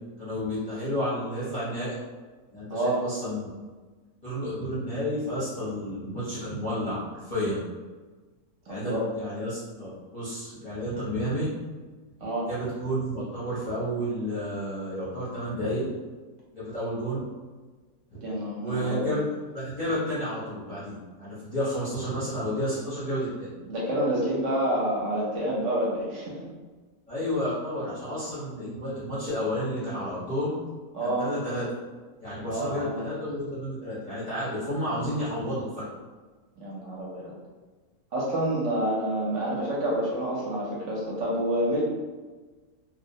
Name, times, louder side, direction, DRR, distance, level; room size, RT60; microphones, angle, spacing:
voice 1, 0.2-2.0 2.5-3.5 4.2-7.6 8.7-11.5 12.5-15.9 16.5-17.2 18.1-18.2 18.6-19.2 19.5-23.5 27.1-30.6 31.0-31.6 32.2-35.9, equal, 40° left, -11 dB, 0.6 m, -31 dB
voice 2, 2.7-3.0 8.7-9.0 12.2-12.5 18.2-19.2 23.7-26.3 30.9-31.2 32.4-33.1 36.6-37.3 38.1-41.8, right 1 dB, 65° right, -5 dB, 0.9 m, -28 dB
2.4 x 2.0 x 2.7 m, 1.3 s
omnidirectional pair, 1.5 m